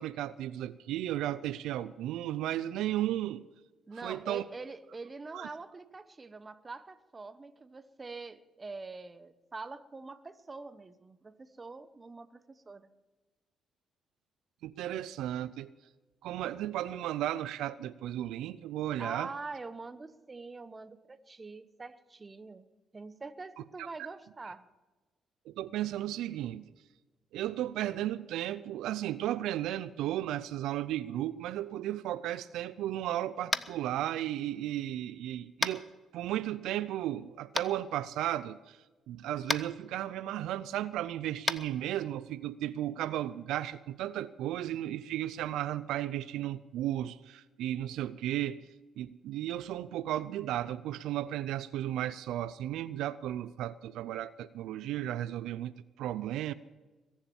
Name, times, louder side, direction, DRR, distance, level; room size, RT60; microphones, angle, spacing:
voice 1, 0.0-3.4 4.0-4.4 5.3-5.5 14.6-15.7 16.2-19.3 23.8-23.9 25.5-26.7 27.3-35.8 36.1-38.8 39.1-48.7 49.0-55.7 56.0-56.5, right 13 dB, 90° right, 15 dB, 0.4 m, -34 dB
voice 2, 3.9-12.9 19.0-22.7 22.9-24.7, right 3 dB, 25° right, 13 dB, 0.9 m, -44 dB
Tap, 33.5-33.8 35.6-35.8 37.6-37.7 39.5-39.6 41.4-41.6, left 3 dB, 25° left, 0.7 m, -30 dB
21.5 x 7.3 x 7.1 m, 1.2 s
cardioid pair, 90°, 0 cm